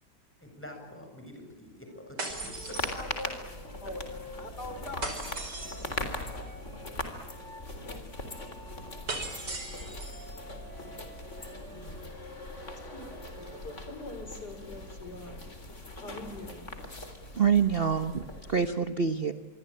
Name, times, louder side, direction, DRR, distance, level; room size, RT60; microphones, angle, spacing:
voice 1, 0.4-2.8 11.7-12.0, left 1 dB, 5° left, 3 dB, 7.8 m, -47 dB
Wind instrument woodwind instrument, 1.8-7.7 8.1-13.7, left 1 dB, 10° right, 6.6 m, -51 dB
sound 1, 2.2-3.5 5.0-6.0 9.1-10.3, right 2 dB, 75° right, 5.7 m, -38 dB
sound 2, 2.3-18.7, left 2 dB, 40° left, 4.1 m, -41 dB
voice 2, 2.8-3.3 3.8-4.0 4.4-5.2 12.8-15.4 16.0-16.7, left 2 dB, 70° left, 8 dB, 5.2 m, -43 dB
voice 3, 17.4-19.3, right 6 dB, 40° right, 9 dB, 1.2 m, -26 dB
27.5 x 23.5 x 8.9 m, 1.1 s
omnidirectional pair, 1.8 m